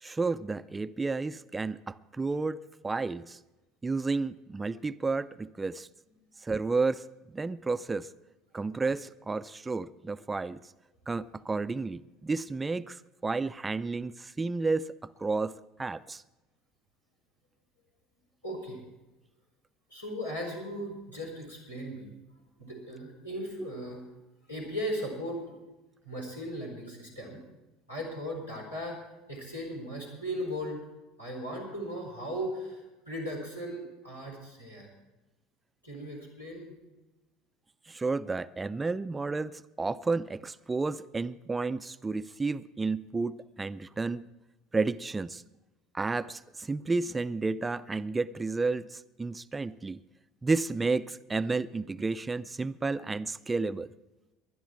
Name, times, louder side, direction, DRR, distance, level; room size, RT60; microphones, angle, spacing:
voice 1, 0.0-2.6 2.8-3.4 3.8-5.9 6.4-7.0 7.3-8.1 8.5-10.6 11.1-14.9 15.2-16.2 37.9-44.3 44.7-45.4 45.9-50.0 50.4-53.9, right 3 dB, 15° right, 15 dB, 0.4 m, -31 dB
voice 2, 18.4-18.8 19.9-22.1 22.6-24.0 24.5-25.5 26.0-27.4 27.9-29.0 29.3-30.8 31.2-34.9 35.8-36.8, equal, 90° left, -4 dB, 4.7 m, -37 dB
20.5 x 11.5 x 4.5 m, 1.1 s
figure-of-eight pair, 65°, 0 cm